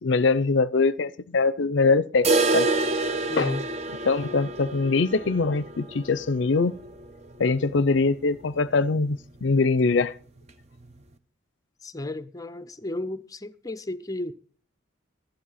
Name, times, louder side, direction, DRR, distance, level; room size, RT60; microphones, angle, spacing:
voice 1, 0.0-2.7 3.4-3.5 4.1-6.8 7.4-10.1, left 4 dB, 65° left, 0.5 m, -23 dB
sound 1, 2.2-8.1 8.3-8.4 8.8-8.9 9.4-9.5 10.4-10.5, right 3 dB, 35° right, 0.8 m, -28 dB
voice 2, 3.3-3.6 11.8-14.3, left 2 dB, 15° left, 0.6 m, -33 dB
13.0 x 11.5 x 5.6 m
head